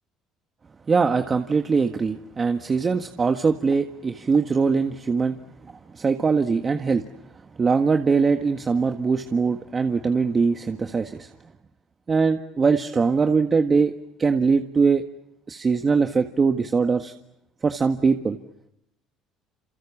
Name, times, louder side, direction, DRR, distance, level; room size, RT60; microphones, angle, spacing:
voice 1, 0.9-5.4 5.9-7.0 7.6-11.3 12.1-13.9 14.2-15.0 15.5-17.1 17.6-18.4, right 5 dB, 30° right, 6 dB, 1.7 m, -22 dB
28.0 x 28.0 x 7.3 m, 0.84 s
supercardioid pair, 90°, 0 cm